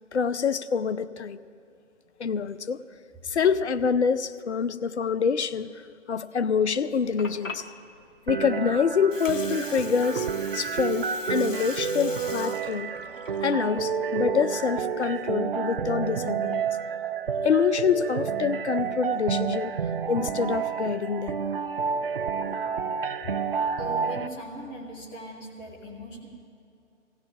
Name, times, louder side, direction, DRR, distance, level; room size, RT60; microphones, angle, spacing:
voice 1, 0.1-1.4 2.2-2.8 3.2-5.7 6.1-7.7 8.3-10.3 10.5-12.9 13.4-16.7 17.4-19.7 20.1-21.4 22.4-22.6, left 6 dB, 65° left, 0.6 m, -26 dB
Water, 6.8-14.8, left 3 dB, 85° left, 1.1 m, -43 dB
sound 1, 8.3-24.3, right 6 dB, 50° right, 0.5 m, -29 dB
voice 2, 23.8-26.3, equal, 5° left, 0.6 m, -39 dB
18.0 x 16.5 x 3.5 m
figure-of-eight pair, 145°, 37 cm